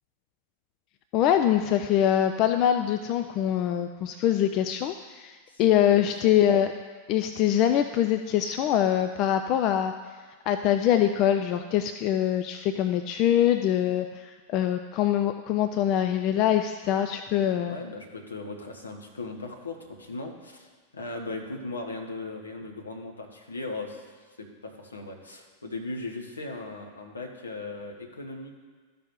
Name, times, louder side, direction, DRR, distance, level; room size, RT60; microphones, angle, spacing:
voice 1, 1.1-6.7 7.1-9.9 10.5-17.8, left 10 dB, 40° left, 8 dB, 0.3 m, -24 dB
voice 2, 5.8-6.3 17.5-24.0 24.4-28.6, left 2 dB, 75° left, 2 dB, 1.1 m, -38 dB
13.5 x 5.4 x 3.0 m, 1.5 s
figure-of-eight pair, 90°, 0 cm